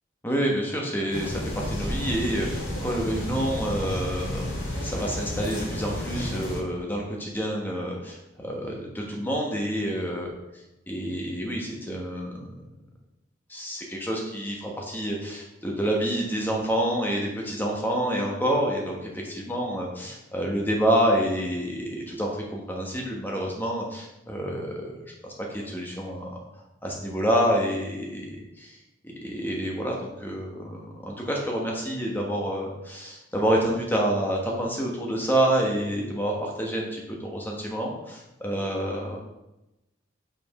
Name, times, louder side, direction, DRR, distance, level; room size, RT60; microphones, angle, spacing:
voice 1, 0.2-10.3 10.9-12.6 13.5-26.4 26.8-28.8 29.0-39.2, right 1 dB, 10° left, -2 dB, 1.3 m, -28 dB
sound 1, 1.1-6.6, left 1 dB, 85° left, 2.2 m, -31 dB
5.5 x 5.2 x 4.9 m, 0.93 s
head